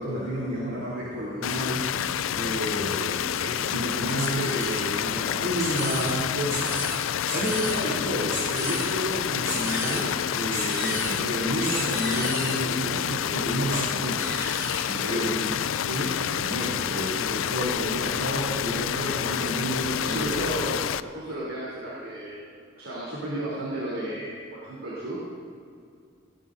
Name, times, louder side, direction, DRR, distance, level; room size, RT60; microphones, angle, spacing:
voice 1, 0.0-1.9 2.3-6.8 7.3-14.4 14.8-15.5 15.8-20.4, equal, 60° right, -8 dB, 3.3 m, -30 dB
sound 1, 1.4-21.0, left 9 dB, 85° left, 0.4 m, -28 dB
sound 2, 4.2-4.8 5.6-6.1 6.5-7.0 7.3-7.8 8.3-8.9 9.4-10.0 10.5-11.2 11.6-12.6 13.7-13.8 14.1-15.0, equal, 15° right, 3.9 m, -33 dB
voice 2, 19.9-22.4 22.8-25.2, right 1 dB, 85° right, -7 dB, 3.5 m, -33 dB
18.0 x 16.5 x 2.7 m, 2.3 s
head